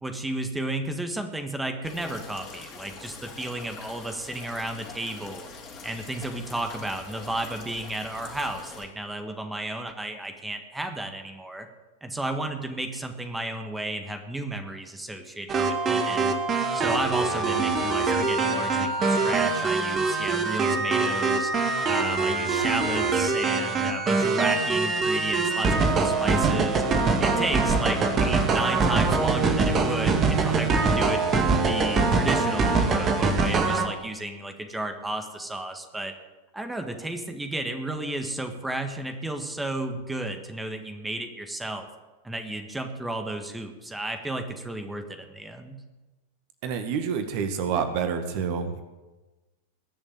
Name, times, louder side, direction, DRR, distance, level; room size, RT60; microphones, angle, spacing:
voice 1, 0.0-5.5 5.8-11.7 12.0-16.3 16.7-21.5 21.8-26.8 27.2-31.2 31.6-36.1 36.5-41.9 42.2-45.8, right 1 dB, 5° right, 6 dB, 1.7 m, -33 dB
sound 1, 1.8-8.8, left 4 dB, 35° left, 4.3 m, -44 dB
sound 2, 15.5-33.9, right 4 dB, 25° right, 2.0 m, -23 dB
voice 2, 46.6-48.8, right 6 dB, 45° right, 8 dB, 1.8 m, -28 dB
21.0 x 7.1 x 9.4 m, 1.2 s
figure-of-eight pair, 90°, 0 cm